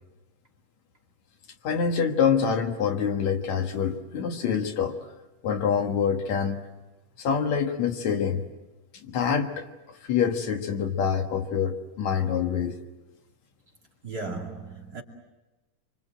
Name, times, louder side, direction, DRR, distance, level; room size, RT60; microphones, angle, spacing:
voice 1, 1.6-5.0 5.4-6.7 7.2-8.4 8.9-12.8, left 7 dB, 70° left, 2.7 m, -26 dB
voice 2, 14.0-15.0, right 3 dB, 35° right, 2.8 m, -35 dB
26.5 x 25.0 x 7.7 m
omnidirectional pair, 3.3 m